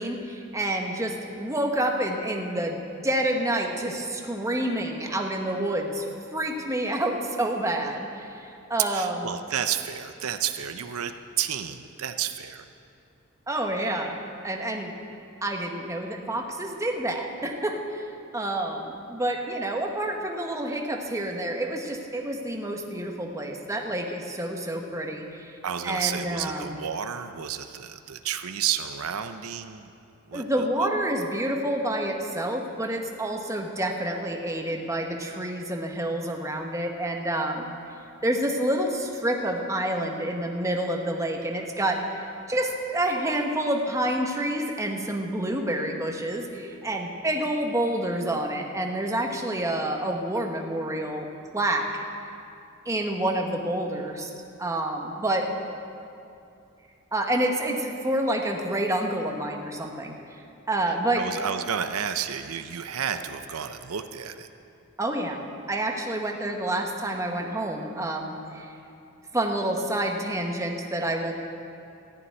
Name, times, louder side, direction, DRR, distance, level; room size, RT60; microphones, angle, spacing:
voice 1, 0.0-9.3 13.5-14.2 14.4-14.9 15.4-18.1 18.3-25.6 25.8-26.8 30.3-37.7 38.2-51.3 51.5-52.0 52.8-54.3 54.6-55.5 57.1-60.2 60.7-61.2 65.0-65.4 65.7-68.7 69.3-71.3, right 1 dB, 15° right, 2 dB, 1.1 m, -28 dB
voice 2, 8.9-12.7 25.6-29.9 30.3-30.9 61.2-64.5, right 8 dB, 75° right, 8 dB, 0.6 m, -31 dB
14.0 x 6.9 x 9.6 m, 2.6 s
head